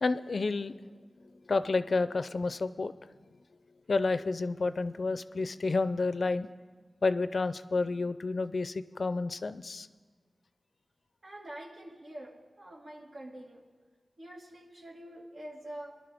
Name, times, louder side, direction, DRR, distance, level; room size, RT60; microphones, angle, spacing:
voice 1, 0.0-0.8 1.5-2.9 3.9-6.5 7.0-9.9, left 3 dB, 70° left, 13 dB, 0.5 m, -30 dB
voice 2, 11.2-13.7 14.2-16.0, right 1 dB, 80° right, -2 dB, 2.0 m, -46 dB
21.5 x 11.5 x 3.5 m, 1.5 s
wide cardioid pair, 55°, 0 cm